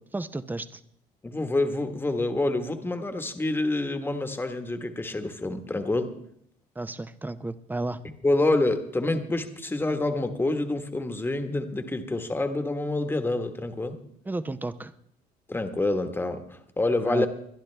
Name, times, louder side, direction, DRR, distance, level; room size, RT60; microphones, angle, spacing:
voice 1, 0.1-0.8 6.8-8.0 14.3-14.9 17.1-17.3, right 2 dB, 10° right, 13 dB, 0.7 m, -32 dB
voice 2, 1.2-6.1 8.2-14.0 15.5-17.3, left 2 dB, 15° left, 7 dB, 1.3 m, -27 dB
22.0 x 11.5 x 3.4 m, 0.69 s
cardioid pair, 110°, 17 cm